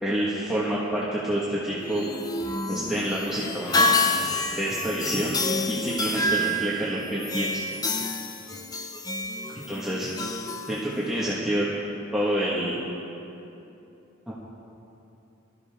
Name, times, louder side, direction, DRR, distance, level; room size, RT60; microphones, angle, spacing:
voice 1, 0.0-2.1 2.7-4.0 4.5-5.4 5.7-7.6 9.5-10.1 10.7-11.7 12.1-12.8 14.3-14.4, right 1 dB, ahead, -8 dB, 1.5 m, -28 dB
sound 1, 1.8-11.3, left 2 dB, 20° left, 0.6 m, -28 dB
21.0 x 13.5 x 3.6 m, 2.9 s
head